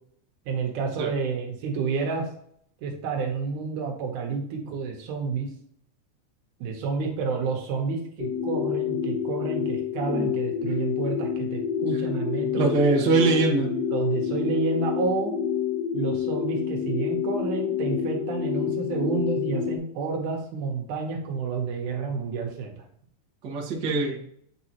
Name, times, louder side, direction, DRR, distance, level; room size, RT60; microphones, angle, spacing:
voice 1, 0.5-2.3 2.8-5.5 6.6-12.7 13.9-15.3 15.9-22.9, right 4 dB, 75° right, 1 dB, 2.4 m, -30 dB
sound 1, 8.2-19.8, left 8 dB, 65° left, 0.3 m, -28 dB
voice 2, 12.6-13.7 23.4-24.2, right 3 dB, 50° right, -3 dB, 1.3 m, -22 dB
8.5 x 4.1 x 2.9 m, 0.65 s
omnidirectional pair, 3.7 m